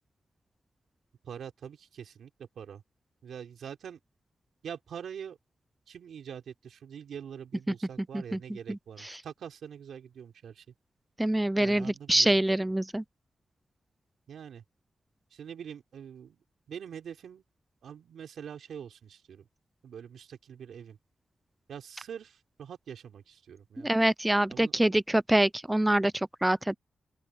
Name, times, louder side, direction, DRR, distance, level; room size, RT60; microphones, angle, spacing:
voice 1, 1.2-2.8 3.2-4.0 4.6-5.4 5.9-10.7 11.6-12.3 14.3-14.6 15.3-17.4 17.8-19.5 19.8-21.0 21.7-23.9 24.5-24.7, right 8 dB, 80° right, 3.7 m, -44 dB
voice 2, 11.2-13.0 23.8-26.8, right 1 dB, 10° right, 0.3 m, -25 dB
open air
cardioid pair, 105°, 0 cm